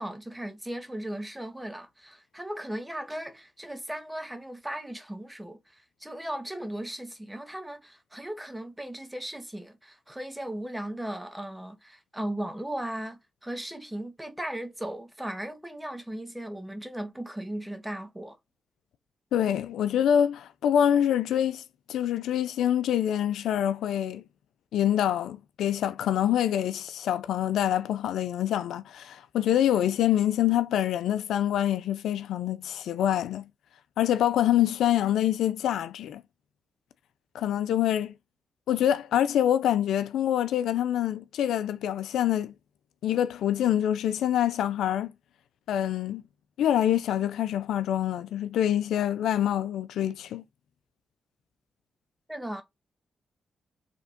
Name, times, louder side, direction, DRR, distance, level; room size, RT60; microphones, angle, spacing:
voice 1, 0.0-18.4 52.3-52.6, right 1 dB, 10° right, 1.8 m, -37 dB
voice 2, 19.3-21.6 21.9-24.2 24.7-33.5 34.0-36.2 37.3-38.1 38.7-42.5 43.0-45.1 45.7-46.2 46.6-50.4, left 10 dB, 85° left, 0.6 m, -25 dB
5.1 x 3.6 x 5.2 m
cardioid pair, 60°, 0 cm